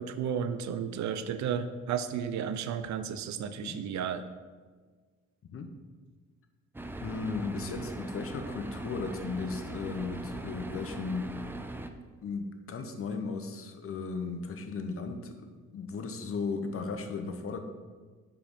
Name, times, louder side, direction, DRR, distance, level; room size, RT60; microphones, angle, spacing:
voice 1, 0.0-4.2, right 7 dB, 70° right, 11 dB, 0.6 m, -33 dB
voice 2, 5.4-5.7 7.0-11.3 12.2-17.6, left 4 dB, 45° left, 6 dB, 0.8 m, -36 dB
sound 1, 6.7-11.9, right 2 dB, 5° right, 0.4 m, -40 dB
5.1 x 4.8 x 5.2 m, 1.5 s
cardioid pair, 90°, 30 cm